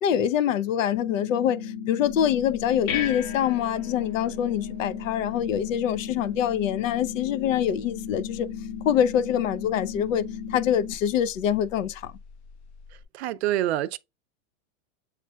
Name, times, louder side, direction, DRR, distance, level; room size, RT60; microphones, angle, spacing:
voice 1, 0.0-8.5 8.8-12.1, left 9 dB, 70° left, 0.7 m, -25 dB
sound 1, 0.9-10.9, left 7 dB, 20° left, 0.3 m, -36 dB
sound 2, 2.0-13.0, left 7 dB, 55° left, 1.2 m, -41 dB
voice 2, 13.1-14.0, right 13 dB, 55° right, 0.5 m, -26 dB
7.5 x 3.2 x 2.3 m
supercardioid pair, 170°, 40 cm